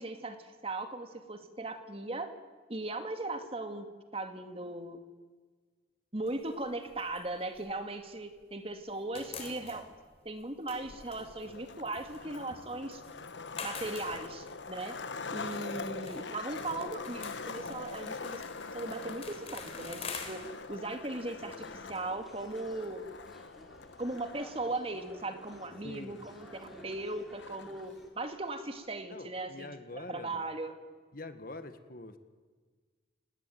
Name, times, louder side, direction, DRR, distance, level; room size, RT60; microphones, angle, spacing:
voice 1, 0.0-2.3 2.7-3.9 4.1-5.0 6.1-9.8 10.2-13.0 13.6-15.0 15.3-18.4 18.7-20.4 20.7-23.0 24.0-30.7, right 2 dB, 30° right, 7 dB, 2.2 m, -38 dB
sound 1, 6.2-8.5 8.8-24.2, left 5 dB, 35° left, 3.8 m, -48 dB
Skateboard, 10.8-27.9, left 4 dB, 75° left, 1.2 m, -44 dB
sound 2, 21.3-28.1, equal, ahead, 3.6 m, -54 dB
voice 2, 25.8-26.2 29.1-30.4 31.1-32.2, left 2 dB, 50° left, 10 dB, 1.7 m, -45 dB
28.5 x 19.0 x 9.2 m, 1.5 s
head